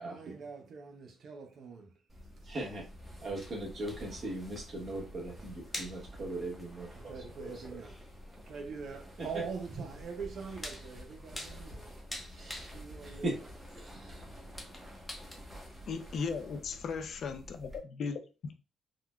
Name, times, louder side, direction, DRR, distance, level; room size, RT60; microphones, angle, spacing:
voice 1, 0.0-1.9 7.0-8.0 8.5-11.9 12.6-13.2, right 5 dB, 65° right, 0.5 m, -43 dB
sound 1, 2.1-17.8, equal, 10° right, 1.0 m, -50 dB
voice 2, 2.4-2.9 3.2-7.8 9.2-9.4 12.3-13.4 13.7-14.2, right 1 dB, 50° right, 1.4 m, -40 dB
sound 2, 3.3-15.4, left 1 dB, 15° left, 0.8 m, -49 dB
voice 3, 15.9-17.7 18.0-18.5, left 5 dB, 60° left, 0.4 m, -37 dB
3.7 x 2.2 x 2.3 m
cardioid pair, 90°, 0 cm